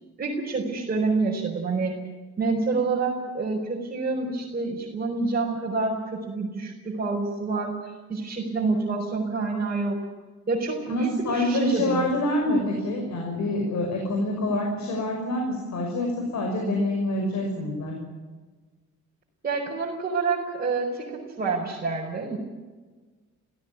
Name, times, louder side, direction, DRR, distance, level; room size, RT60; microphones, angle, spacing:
voice 1, 0.2-1.9 2.4-10.0 10.5-12.0 19.4-22.4, right 3 dB, 30° right, -3 dB, 5.1 m, -27 dB
voice 2, 10.9-17.9, left 1 dB, 65° left, 2 dB, 6.0 m, -26 dB
22.0 x 16.0 x 9.5 m, 1.3 s
cardioid pair, 90°, 30 cm